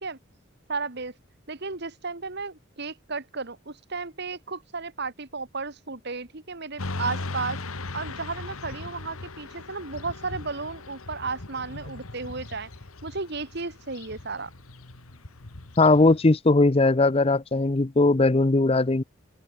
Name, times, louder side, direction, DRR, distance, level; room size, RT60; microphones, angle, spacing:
voice 1, 0.7-1.1 1.5-7.6 7.9-12.7 13.0-14.5, right 4 dB, 50° right, 1.8 m, -34 dB
Motorcycle / Traffic noise roadway noise, 6.8-16.2, left 2 dB, 90° left, 1.8 m, -38 dB
voice 2, 15.8-19.0, left 2 dB, 30° left, 0.6 m, -19 dB
open air
head